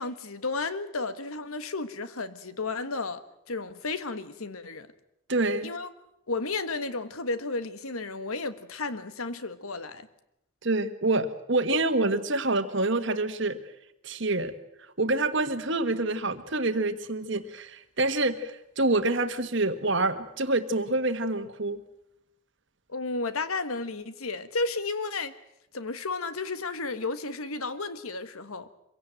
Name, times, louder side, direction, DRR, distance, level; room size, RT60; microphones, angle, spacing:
voice 1, 0.0-3.2 3.5-4.9 5.6-5.9 6.3-10.1 22.9-25.3 25.7-28.7, left 3 dB, 80° left, 1.5 m, -33 dB
voice 2, 5.3-5.7 10.6-13.6 14.0-14.5 15.0-21.8, right 2 dB, 55° right, 1.6 m, -27 dB
24.5 x 17.0 x 9.1 m
head